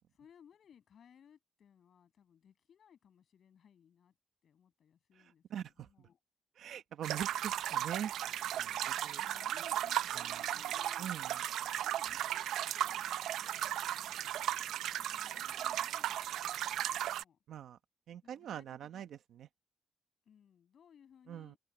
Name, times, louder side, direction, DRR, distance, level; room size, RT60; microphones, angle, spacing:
voice 1, 0.1-4.1 4.4-6.2 9.1-11.3 11.8-14.7 15.0-17.4 18.2-19.1 20.2-21.6, left 8 dB, 50° left, 7.3 m, -63 dB
voice 2, 5.5-5.9 6.6-8.1 8.6-9.2 11.0-11.3 17.5-17.8 18.1-19.1 19.4-19.5 21.3-21.5, right 9 dB, 65° right, 1.3 m, -42 dB
sound 1, 7.0-17.2, right 12 dB, 90° right, 0.6 m, -36 dB
cardioid pair, 155°, 0 cm